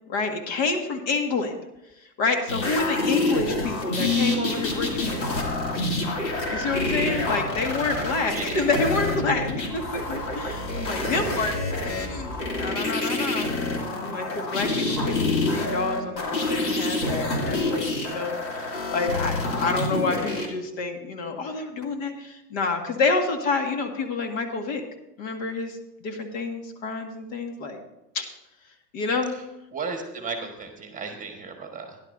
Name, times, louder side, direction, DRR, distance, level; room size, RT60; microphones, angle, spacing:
voice 1, 0.1-1.5 2.2-5.1 5.3-5.4 6.5-11.6 11.8-13.5 14.0-24.8 25.2-25.8 26.0-27.8 28.1-28.3 28.9-29.3, left 3 dB, 50° left, 4 dB, 2.0 m, -28 dB
sound 1, 2.5-20.5 21.8-21.9, left 2 dB, 85° left, 2.7 m, -27 dB
sound 2, 4.6-12.7, right 1 dB, 30° left, 3.7 m, -40 dB
voice 2, 8.3-8.7 14.5-14.6 29.3-29.4 29.7-32.0, right 4 dB, 15° right, 4 dB, 1.5 m, -35 dB
17.5 x 10.5 x 2.7 m, 0.91 s
hypercardioid pair, 110°, 50 cm